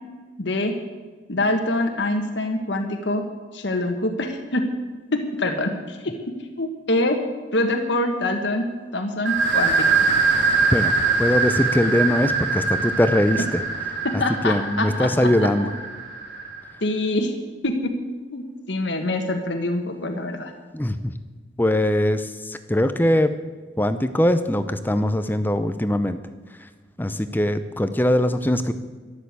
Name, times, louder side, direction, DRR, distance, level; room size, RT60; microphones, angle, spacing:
voice 1, 0.4-0.7 1.3-3.2 3.5-4.7 5.1-7.2 7.5-8.7 8.9-9.9 14.0-15.3 16.8-17.3 17.6-17.9 18.3-20.5, left 2 dB, 70° left, 4 dB, 1.5 m, -25 dB
sound 1, 9.3-16.7, right 4 dB, 75° right, 3.3 m, -23 dB
voice 2, 10.7-13.6 14.1-15.7 20.7-21.1 21.6-23.4 23.8-26.2 26.6-26.7 27.0-28.7, left 1 dB, 10° left, 10 dB, 0.6 m, -21 dB
13.5 x 12.5 x 8.1 m, 1.4 s
head